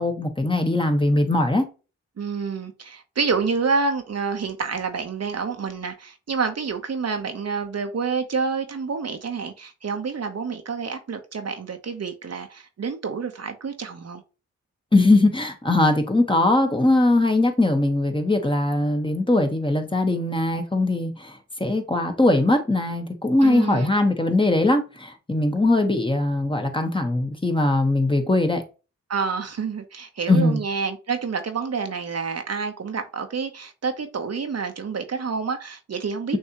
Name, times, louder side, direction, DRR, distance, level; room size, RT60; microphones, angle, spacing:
voice 1, 0.0-1.7 14.9-28.6 30.3-30.6, left 2 dB, 15° left, 1.2 m, -21 dB
voice 2, 2.2-14.2 23.4-23.9 29.1-36.4, right 5 dB, 50° right, 0.9 m, -28 dB
6.5 x 2.7 x 2.9 m
supercardioid pair, 45°, 32 cm